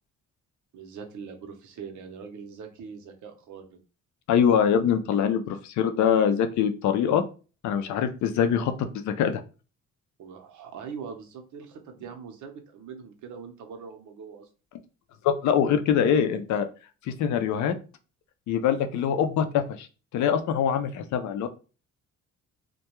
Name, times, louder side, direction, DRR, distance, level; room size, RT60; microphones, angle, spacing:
voice 1, 0.7-3.8 10.2-14.5, right 6 dB, 75° right, 5 dB, 0.7 m, -42 dB
voice 2, 4.3-7.2 7.6-9.4 15.2-16.7 17.1-17.8 18.5-19.9 20.1-21.5, left 8 dB, 70° left, 8 dB, 0.5 m, -24 dB
2.2 x 2.2 x 2.9 m, 0.34 s
cardioid pair, 90°, 30 cm